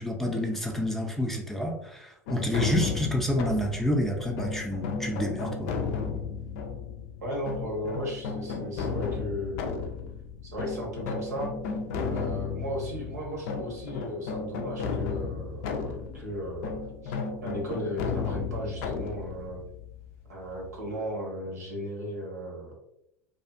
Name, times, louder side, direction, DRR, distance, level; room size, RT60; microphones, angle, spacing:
voice 1, 0.0-5.7, left 1 dB, 5° left, 1 dB, 0.5 m, -29 dB
sound 1, 2.3-21.0, left 5 dB, 65° left, 0.4 m, -34 dB
voice 2, 7.2-9.9 10.4-11.5 12.1-16.7 17.0-17.2 17.4-19.6 20.3-22.7, equal, 85° right, -1 dB, 0.9 m, -36 dB
2.6 x 2.4 x 2.4 m, 0.79 s
hypercardioid pair, 80°, 8 cm